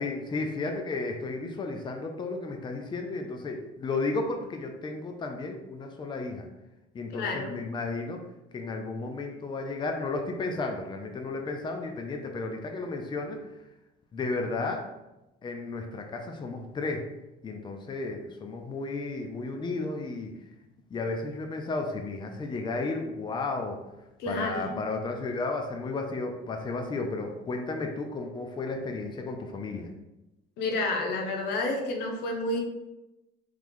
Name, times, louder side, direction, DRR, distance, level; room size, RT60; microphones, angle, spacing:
voice 1, 0.0-6.5 6.9-8.2 8.5-13.4 14.1-14.8 15.4-17.1 17.4-20.3 20.9-23.8 24.3-29.9, left 3 dB, 25° left, 3 dB, 0.6 m, -33 dB
voice 2, 7.1-7.5 24.2-24.8 30.6-32.6, left 2 dB, 85° left, 2 dB, 0.9 m, -30 dB
3.5 x 3.3 x 3.6 m, 0.95 s
cardioid pair, 110°, 17 cm